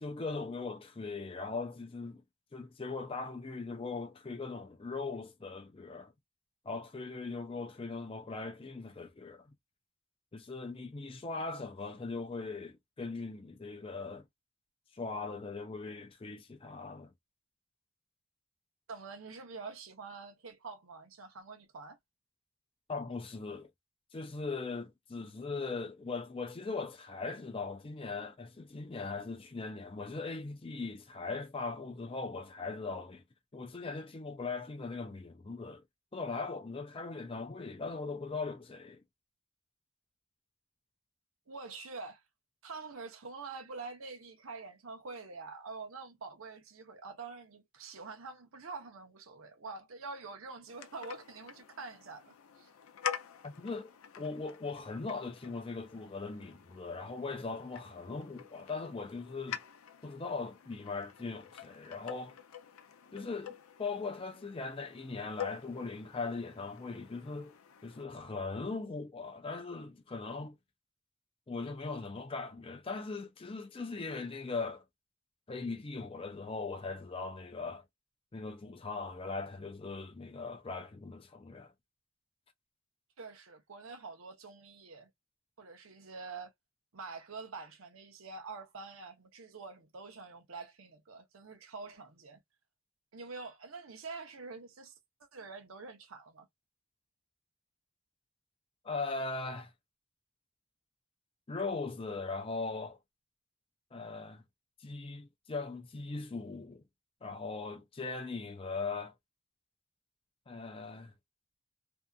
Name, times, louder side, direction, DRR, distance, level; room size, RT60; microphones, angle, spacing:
voice 1, 0.0-2.2 2.5-6.1 6.6-9.5 10.3-14.3 14.9-17.1 22.9-23.7 24.1-33.2 33.5-35.8 36.1-39.0 53.4-53.9 54.2-59.6 60.0-62.4 63.1-63.5 63.8-67.6 67.8-70.6 71.5-74.8 75.5-77.8 78.3-81.7 98.8-99.7 101.5-103.0 103.9-104.4 104.8-106.8 107.2-109.1 110.5-111.1, left 3 dB, 25° left, 0.4 m, -39 dB
voice 2, 18.9-22.0 41.5-42.2 42.6-52.7 83.2-85.1 85.6-86.5 86.9-92.4 93.1-94.9 95.3-96.5, right 4 dB, 75° right, 0.7 m, -46 dB
sound 1, 50.7-68.1, left 8 dB, 80° left, 0.5 m, -47 dB
2.7 x 2.4 x 2.2 m
head